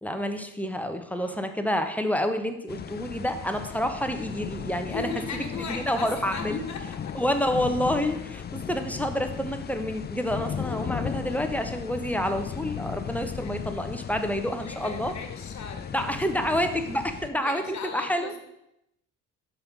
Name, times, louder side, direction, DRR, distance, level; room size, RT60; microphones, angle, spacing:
voice 1, 0.0-5.1 5.6-6.6 7.1-15.1 15.9-17.6 17.9-18.3, equal, 5° left, 7 dB, 0.9 m, -28 dB
voice 2, 1.1-1.5 4.9-7.1 13.4-13.5 14.6-16.4 17.4-18.4, left 4 dB, 50° left, 3 dB, 1.8 m, -37 dB
sound 1, 2.7-17.3, left 7 dB, 30° left, 0.4 m, -36 dB
5.7 x 5.2 x 5.9 m, 0.83 s
supercardioid pair, 65°, 35 cm